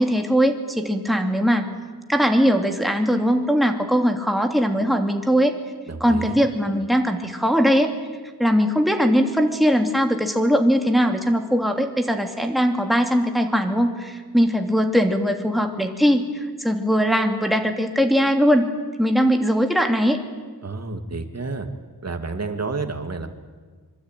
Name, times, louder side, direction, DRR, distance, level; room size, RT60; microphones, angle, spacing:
voice 1, 0.0-1.7 2.1-5.5 6.0-7.9 8.4-18.7 19.0-20.2, equal, ahead, 4 dB, 2.8 m, -20 dB
voice 2, 5.9-6.4 20.6-21.7 22.0-23.3, right 3 dB, 40° right, 6 dB, 2.6 m, -30 dB
25.0 x 23.5 x 9.2 m, 1.5 s
wide cardioid pair, 100°, 39 cm